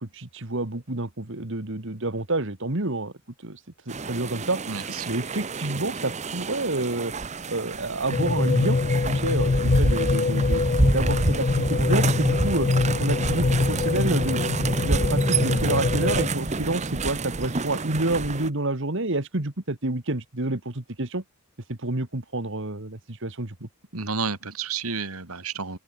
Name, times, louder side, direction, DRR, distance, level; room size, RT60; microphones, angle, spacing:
voice 1, 0.0-3.1 3.4-4.6 5.1-7.1 7.5-8.8 9.1-10.6 10.9-12.7 13.0-21.2 21.7-23.5, right 2 dB, 60° right, 2.0 m, -29 dB
sound 1, 3.9-18.5, right 3 dB, 30° right, 1.0 m, -28 dB
voice 2, 4.7-5.1 23.9-25.8, right 5 dB, 80° right, 2.9 m, -31 dB
sound 2, 8.1-16.3, left 3 dB, 35° left, 0.4 m, -24 dB
open air
head